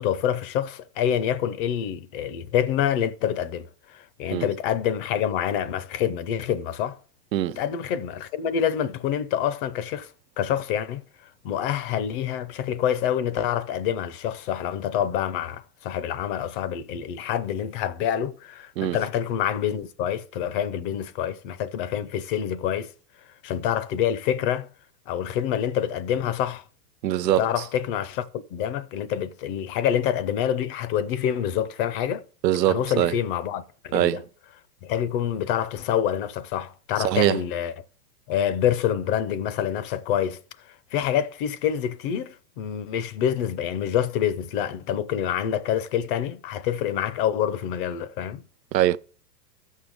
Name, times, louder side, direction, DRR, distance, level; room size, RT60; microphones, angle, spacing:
voice 1, 0.0-7.0 7.6-22.9 23.4-24.7 25.1-26.6 27.4-32.2 32.7-34.2 34.8-37.7 38.3-40.4 40.7-48.4, left 9 dB, 35° left, 0.5 m, -27 dB
voice 2, 27.0-27.5 32.4-33.1 33.9-34.2 37.0-37.4 48.7-49.0, right 13 dB, 90° right, 0.7 m, -22 dB
16.0 x 6.4 x 3.5 m
hypercardioid pair, 130°, 48 cm